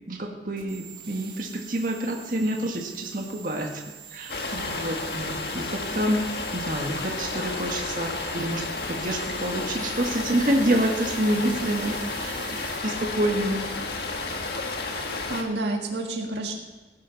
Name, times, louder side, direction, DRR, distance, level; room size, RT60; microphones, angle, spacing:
voice 1, 0.1-3.8 4.1-6.2 6.5-12.4 12.8-13.6, right 1 dB, 50° right, 1 dB, 1.7 m, -27 dB
sound 1, 0.6-12.8, right 7 dB, 30° right, 2.4 m, -45 dB
sound 2, 4.3-15.4, left 3 dB, 65° left, 1.5 m, -32 dB
voice 2, 14.8-16.6, right 2 dB, 85° right, 2 dB, 1.7 m, -30 dB
17.5 x 10.5 x 4.1 m, 1.3 s
head